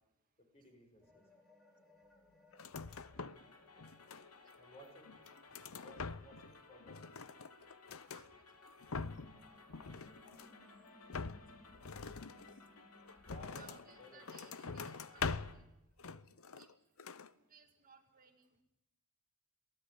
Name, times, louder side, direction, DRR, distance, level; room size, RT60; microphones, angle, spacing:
voice 1, 0.5-1.2 2.6-2.8 4.6-5.1 5.8-7.1 13.2-14.6, equal, 30° left, 3 dB, 5.9 m, -59 dB
sound 1, 1.0-7.0 7.5-15.6, left 1 dB, ahead, 3.3 m, -66 dB
sound 2, 2.5-3.5 3.8-4.6 5.1-6.5 6.8-8.3 8.7-9.4 9.7-10.6 11.1-13.9 14.3-15.7 16.0-16.7 17.0-17.3, left 4 dB, 65° left, 0.8 m, -44 dB
sound 3, 2.7-15.6, left 4 dB, 85° left, 3.0 m, -60 dB
voice 2, 4.3-4.8 8.1-8.3 8.6-8.7 9.6-9.7 10.1-10.2 10.6-10.7 13.6-15.2 15.5-15.7 16.6-16.7 17.4-18.6, right 6 dB, 40° right, 4 dB, 2.1 m, -63 dB
23.0 x 16.0 x 9.6 m, 0.88 s
head